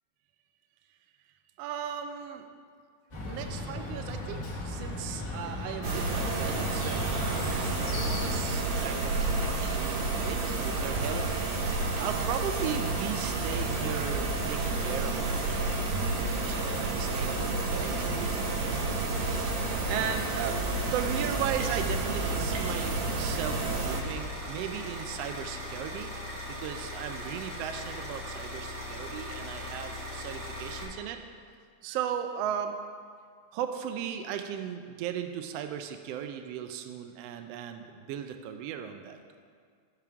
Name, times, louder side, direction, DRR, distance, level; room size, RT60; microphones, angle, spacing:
voice 1, 1.6-2.4 3.2-11.6 12.0-20.6 20.9-26.1 26.5-31.2 31.8-32.7 33.5-39.2, right 9 dB, 85° right, 7 dB, 1.4 m, -37 dB
Chirp tweet, 3.1-8.3, left 2 dB, 25° left, 2.2 m, -37 dB
sound 1, 5.8-24.0, right 2 dB, 65° right, 2.2 m, -30 dB
sound 2, 23.9-30.8, left 1 dB, 40° right, 2.1 m, -39 dB
16.5 x 5.9 x 3.5 m, 2.1 s
omnidirectional pair, 3.5 m